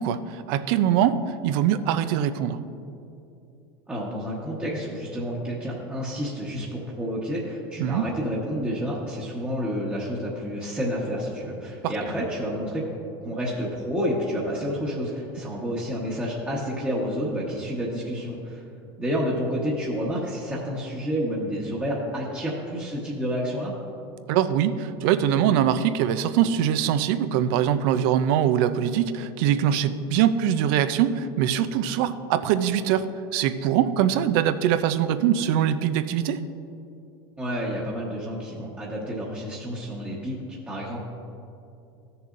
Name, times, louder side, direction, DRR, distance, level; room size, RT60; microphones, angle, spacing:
voice 1, 0.0-2.6 7.8-8.1 11.8-11.9 24.3-33.1 33.3-36.4, right 10 dB, 65° right, 12 dB, 0.5 m, -23 dB
voice 2, 3.9-12.9 13.2-18.6 19.0-23.7 37.4-41.0, equal, 10° right, -5 dB, 1.1 m, -29 dB
13.5 x 6.8 x 2.5 m, 2.7 s
supercardioid pair, 125°, 13 cm